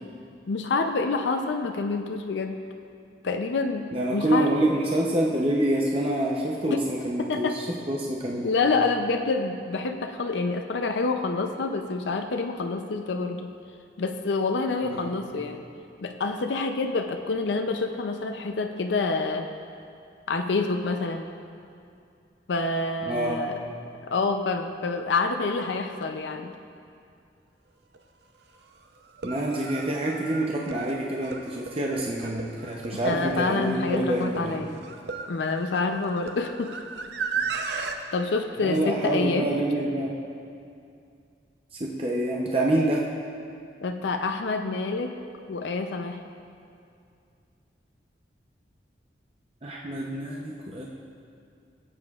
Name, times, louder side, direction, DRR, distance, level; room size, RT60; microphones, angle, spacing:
voice 1, 0.5-2.6 3.2-4.5 6.7-6.8 7.2-7.6 8.4-13.5 14.0-15.6 16.0-19.5 20.3-21.3 22.5-23.6 24.1-26.5 33.0-34.7 35.3-36.8 37.7-37.8 38.1-39.5 43.8-45.2 45.5-46.2, left 3 dB, 80° left, 5 dB, 0.5 m, -27 dB
voice 2, 3.9-8.5 14.8-15.2 23.0-23.4 29.2-34.7 37.4-37.5 38.6-40.1 41.7-43.0 49.6-50.9, right 1 dB, 30° right, -2 dB, 0.7 m, -27 dB
sound 1, 27.9-28.0 29.1-38.0, right 5 dB, 70° right, 0.6 m, -35 dB
17.0 x 8.5 x 2.4 m, 2.4 s
head